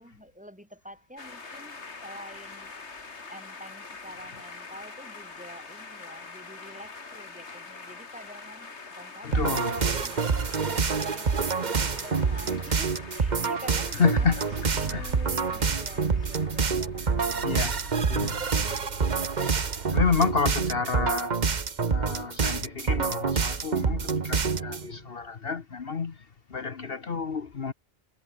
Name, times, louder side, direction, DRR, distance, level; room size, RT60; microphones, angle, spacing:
voice 1, 0.0-2.7 3.3-17.8, equal, 5° right, 3.5 m, -47 dB
sound 1, 1.2-17.8, left 4 dB, 75° left, 2.7 m, -44 dB
voice 2, 9.2-9.7 14.0-14.4 14.9-15.1 17.4-18.4 19.9-21.4 21.8-26.2 26.5-27.7, left 5 dB, 60° left, 1.4 m, -29 dB
sound 2, 9.3-24.9, right 5 dB, 40° right, 1.2 m, -27 dB
Car / Engine starting, 13.3-13.4 14.0-20.2, right 5 dB, 80° right, 2.0 m, -41 dB
omnidirectional pair, 1.2 m